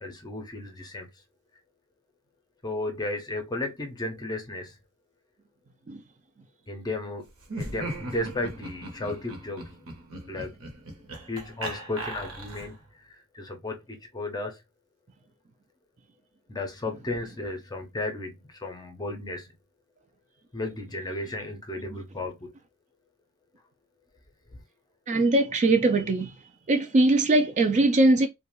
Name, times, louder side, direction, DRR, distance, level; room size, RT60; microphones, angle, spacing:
voice 1, 0.0-1.1 2.6-4.7 6.7-7.3 7.6-9.7 10.3-10.5 11.3-12.8 13.1-14.6 16.5-19.5 20.5-22.5 24.5-24.6, left 2 dB, 20° left, 0.6 m, -34 dB
Laughter, 7.4-12.9, right 1 dB, 65° right, 0.9 m, -38 dB
voice 2, 25.1-26.3 26.7-28.3, right 2 dB, 35° right, 0.4 m, -21 dB
2.4 x 2.2 x 3.0 m
head